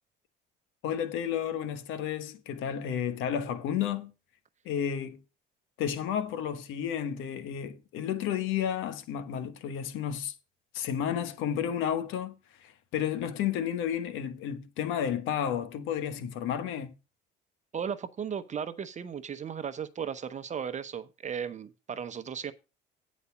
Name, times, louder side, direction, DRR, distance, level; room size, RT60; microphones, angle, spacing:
voice 1, 0.8-4.1 4.6-5.2 5.8-10.3 10.7-12.3 12.6-16.9, left 9 dB, 75° left, 1.3 m, -32 dB
voice 2, 17.7-22.5, right 7 dB, 35° right, 0.8 m, -36 dB
9.6 x 4.1 x 6.9 m
cardioid pair, 95°, 20 cm